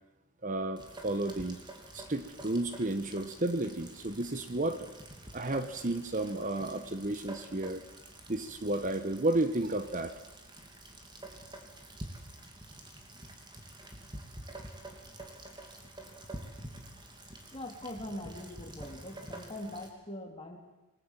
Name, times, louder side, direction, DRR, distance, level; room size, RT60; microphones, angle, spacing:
voice 1, 0.4-1.6 1.9-4.9 5.3-7.8 8.3-10.2, right 2 dB, 35° right, 10 dB, 1.2 m, -32 dB
Rain, 0.8-19.9, right 1 dB, 20° right, 3.1 m, -48 dB
voice 2, 17.5-20.6, left 1 dB, 25° left, 2 dB, 3.6 m, -42 dB
28.0 x 20.5 x 7.6 m, 1.1 s
head